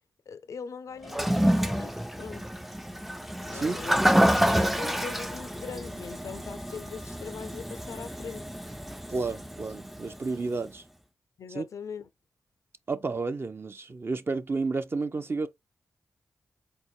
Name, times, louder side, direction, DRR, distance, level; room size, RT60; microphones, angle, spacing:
voice 1, 0.3-2.4 3.5-8.5 11.4-12.1, left 5 dB, 70° left, 0.5 m, -41 dB
Toilet flush, 1.0-10.3, equal, 5° right, 0.4 m, -28 dB
voice 2, 9.1-10.8 11.5-11.6 12.9-15.5, right 3 dB, 45° right, 0.6 m, -31 dB
4.4 x 2.1 x 4.2 m
supercardioid pair, 40°, 6 cm